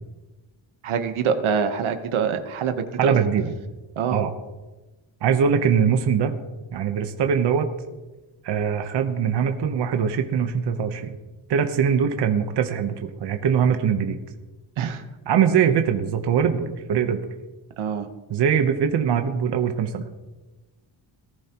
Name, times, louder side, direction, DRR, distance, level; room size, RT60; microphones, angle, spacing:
voice 1, 0.8-3.1 4.0-4.2 14.8-15.0 17.8-18.1, right 7 dB, 80° right, 7 dB, 1.2 m, -25 dB
voice 2, 3.0-3.5 4.1-4.3 5.2-6.3 6.7-7.7 8.4-11.2 11.5-14.2 15.3-17.2 18.3-20.0, right 7 dB, 55° right, 6 dB, 1.0 m, -22 dB
19.0 x 14.0 x 3.0 m, 1.1 s
wide cardioid pair, 175°, 48 cm